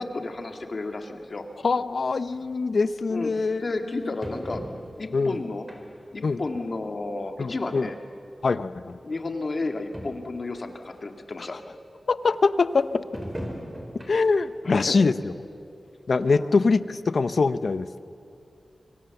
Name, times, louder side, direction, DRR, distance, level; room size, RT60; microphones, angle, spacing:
voice 1, 0.0-1.5 3.1-3.3 3.6-4.6 5.0-5.7 6.1-8.0 9.0-11.6 14.6-15.0 16.3-16.6, left 3 dB, 50° left, 5 dB, 2.1 m, -32 dB
voice 2, 1.6-4.1 5.1-5.4 6.2-6.4 7.4-7.9 8.4-9.0 11.5-11.6 12.1-13.0 14.1-15.3 16.1-17.9, left 4 dB, 65° left, 14 dB, 0.7 m, -24 dB
sound 1, 2.3-2.4 3.4-3.5 4.2-5.1 5.7-6.2 6.6-6.7 7.7-7.8 8.0-8.1 8.9-9.0 9.3-9.4 9.6-9.7 9.9-10.4 10.9-11.0 13.1-14.5 14.9-15.0 15.5-15.6, equal, 15° right, 3.7 m, -38 dB
25.0 x 25.0 x 7.1 m, 2.6 s
wide cardioid pair, 100°, 0 cm